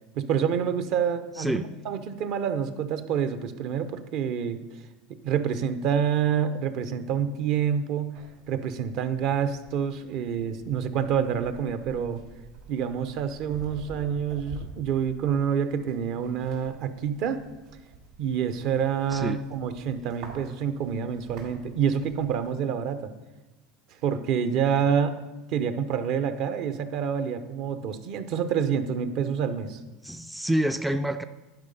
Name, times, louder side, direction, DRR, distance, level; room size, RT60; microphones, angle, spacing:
voice 1, 0.2-4.8 5.2-8.2 8.5-12.2 12.7-17.4 18.2-23.1 24.0-25.2 25.5-29.8, right 7 dB, 60° right, 10 dB, 0.7 m, -27 dB
sound 1, 8.1-22.5, right 4 dB, 75° right, 3.5 m, -48 dB
voice 2, 30.0-31.2, right 1 dB, 5° right, 9 dB, 0.3 m, -27 dB
10.5 x 4.9 x 5.3 m, 1.1 s
supercardioid pair, 120°, 0 cm